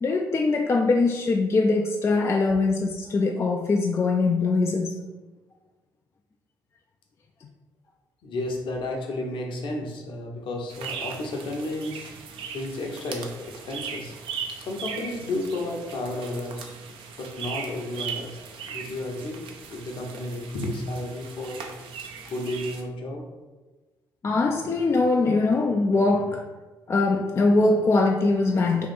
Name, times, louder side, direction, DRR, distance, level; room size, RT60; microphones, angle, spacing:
voice 1, 0.0-5.0 7.4-7.5 24.2-26.4 26.9-28.9, left 3 dB, 25° left, 2 dB, 0.3 m, -22 dB
voice 2, 8.2-12.1 12.5-14.1 14.6-16.7 17.2-18.4 18.7-19.4 19.7-21.7 22.2-23.3, left 1 dB, 50° left, 1 dB, 0.8 m, -32 dB
sound 1, 10.7-22.8, right 6 dB, 55° right, 0.5 m, -38 dB
3.1 x 2.9 x 4.1 m, 1.2 s
figure-of-eight pair, 45°, 11 cm